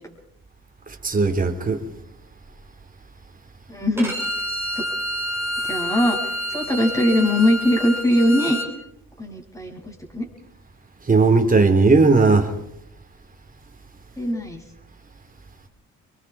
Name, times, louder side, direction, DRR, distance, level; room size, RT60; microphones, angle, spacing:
voice 1, 0.9-1.8 11.1-12.5, right 3 dB, 30° right, 3.6 m, -17 dB
voice 2, 3.7-4.1 5.7-6.2 6.5-8.6 9.2-10.3 14.2-14.6, left 1 dB, 10° left, 7.8 m, -21 dB
Bowed string instrument, 4.0-8.7, equal, 10° right, 5.6 m, -28 dB
26.5 x 23.0 x 4.9 m
cardioid pair, 90°, 30 cm